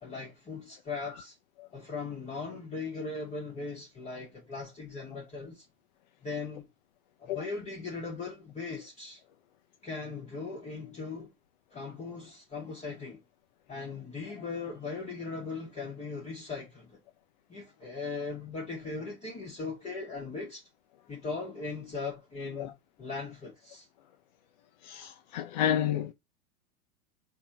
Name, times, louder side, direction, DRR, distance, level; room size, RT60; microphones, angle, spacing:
voice 1, 0.0-1.3 1.7-5.6 6.2-6.6 7.2-9.2 9.8-11.3 11.7-13.2 13.7-17.0 17.5-20.6 21.1-22.7 23.0-23.9, left 4 dB, 15° left, 1.0 m, -39 dB
voice 2, 24.8-26.1, left 10 dB, 30° left, 0.4 m, -30 dB
4.0 x 2.9 x 3.5 m
figure-of-eight pair, 95°, 45 cm